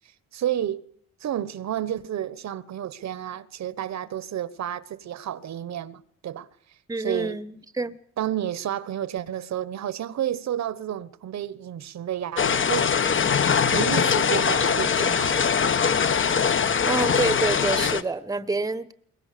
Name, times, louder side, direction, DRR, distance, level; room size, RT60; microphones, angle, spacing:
voice 1, 0.3-0.9 1.2-6.5 7.0-7.4 8.2-12.9 13.7-15.6, right 11 dB, 65° right, 1.2 m, -31 dB
voice 2, 6.9-8.0 16.8-18.9, right 3 dB, 10° right, 1.1 m, -27 dB
sound 1, 12.4-18.0, left 6 dB, 40° left, 1.3 m, -22 dB
22.5 x 20.0 x 6.8 m
cardioid pair, 90°, 30 cm